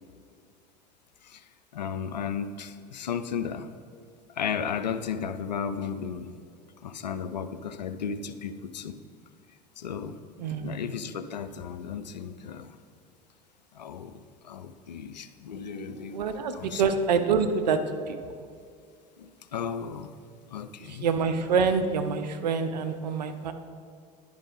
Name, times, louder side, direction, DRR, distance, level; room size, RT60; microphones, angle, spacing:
voice 1, 1.7-3.7 4.4-6.3 6.8-9.0 9.8-10.2 10.6-12.7 13.7-16.3 16.6-16.8 19.2-20.2 20.5-21.1, left 7 dB, 85° left, 10 dB, 0.4 m, -34 dB
voice 2, 10.4-11.0 16.1-18.3 20.8-23.5, right 5 dB, 80° right, 8 dB, 0.6 m, -26 dB
10.5 x 5.1 x 3.9 m, 2.1 s
hypercardioid pair, 75°, 21 cm